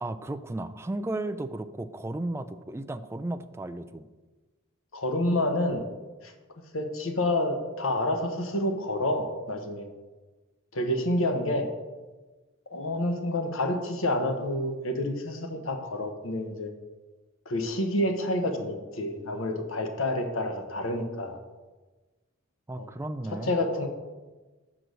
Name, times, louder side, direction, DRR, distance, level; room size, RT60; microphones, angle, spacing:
voice 1, 0.0-4.1 22.7-23.5, right 2 dB, 15° right, 9 dB, 0.4 m, -34 dB
voice 2, 4.9-5.8 6.2-6.3 6.7-9.9 10.7-11.7 12.7-16.7 17.5-21.4 22.8-22.9 23.3-23.9, left 1 dB, 75° left, 5 dB, 1.1 m, -28 dB
6.7 x 6.1 x 6.3 m, 1.2 s
head